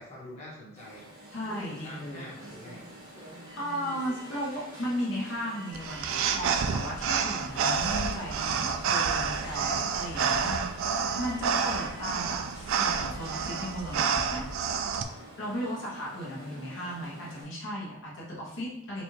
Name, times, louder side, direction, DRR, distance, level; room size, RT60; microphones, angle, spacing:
voice 1, 0.0-2.8 16.3-16.7, equal, 35° left, -7 dB, 1.0 m, -46 dB
Alarm, 0.8-17.4, right 1 dB, 15° right, 1.0 m, -47 dB
voice 2, 1.3-2.3 3.6-14.5 15.4-19.0, equal, 65° left, -5 dB, 0.9 m, -36 dB
sound 1, 5.7-15.0, right 6 dB, 85° right, 0.3 m, -29 dB
4.1 x 2.3 x 3.1 m, 0.90 s
head